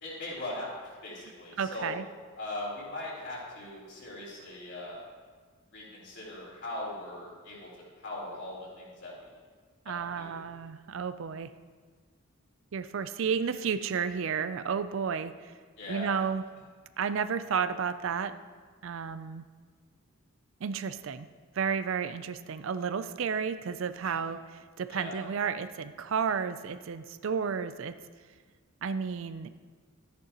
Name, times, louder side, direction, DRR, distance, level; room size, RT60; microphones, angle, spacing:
voice 1, 0.0-1.9 2.4-5.0 5.7-7.7 8.0-9.1 9.9-10.3 15.8-16.1 24.0-24.2 24.9-25.2, left 1 dB, 55° left, -5 dB, 3.7 m, -40 dB
voice 2, 1.6-2.0 9.9-11.5 12.7-15.5 15.9-16.4 17.0-18.4 18.8-19.4 20.6-21.3 21.6-28.0 28.8-29.5, right 6 dB, 60° right, 12 dB, 0.4 m, -32 dB
13.5 x 10.0 x 2.9 m, 1.5 s
head